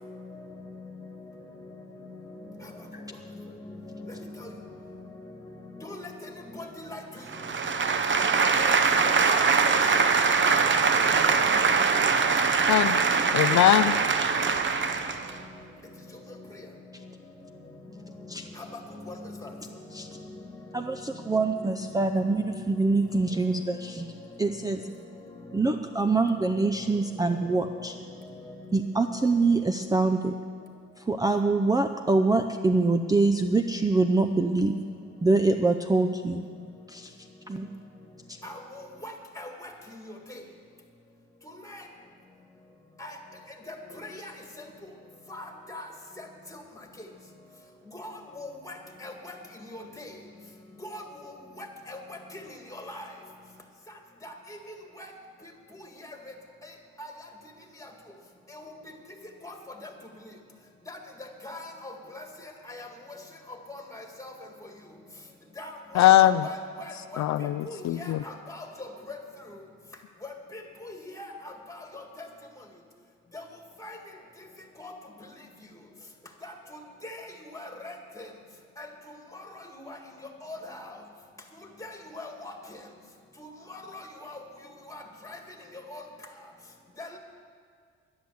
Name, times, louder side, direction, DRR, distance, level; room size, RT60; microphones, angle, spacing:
voice 1, 4.1-4.5 5.8-7.0 8.6-8.7 9.0-9.7 10.5-10.6 11.2-11.3 18.6-18.7 19.1-19.2 19.4-19.5 38.4-39.7 41.7-41.8 43.0-43.1 43.7-44.3 45.3-45.9 46.2-46.3 47.9-48.7 49.0-49.4 49.7-50.1 50.8-51.0 51.6-52.2 52.9-53.0 54.2-54.3 55.0-55.1 57.0-57.1 58.5-58.7 59.4-59.5 60.9-61.0 61.4-62.2 62.7-62.9 63.7-64.3 65.6-66.1 66.4-67.2 67.7-69.2 70.5-70.6 71.2-72.3 73.3-73.4 73.8-74.0 74.8-74.9 76.4-76.5 77.0-77.2 77.5-77.9 78.8-78.9 79.3-80.0 80.4-80.8 81.8-82.5 83.4-84.4 84.9-85.0 85.2-85.4 85.9-86.0 87.0-87.2, left 2 dB, 10° left, 3 dB, 1.9 m, -41 dB
sound 1, 7.3-15.3, right 5 dB, 40° right, 0.9 m, -23 dB
voice 2, 13.3-13.9 65.9-66.4 67.2-68.2, left 13 dB, 65° left, 12 dB, 0.4 m, -20 dB
voice 3, 20.7-24.1 24.4-24.9 25.5-28.0 28.7-30.4 31.0-34.8 35.2-36.5 36.9-37.2 37.5-37.7 38.3-38.4, right 3 dB, 10° right, 6 dB, 0.5 m, -25 dB
11.0 x 10.5 x 7.8 m, 2.1 s
cardioid pair, 90°, 30 cm